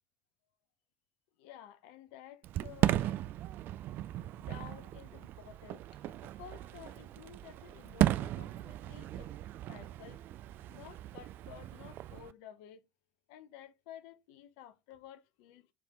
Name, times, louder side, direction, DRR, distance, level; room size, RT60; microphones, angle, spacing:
voice 1, 1.4-3.1 4.3-10.2 10.7-12.9 13.3-15.7, left 10 dB, 60° left, 0.6 m, -53 dB
Fireworks, 2.4-12.3, right 13 dB, 45° right, 0.3 m, -36 dB
4.9 x 3.4 x 2.9 m
figure-of-eight pair, 60°, 5 cm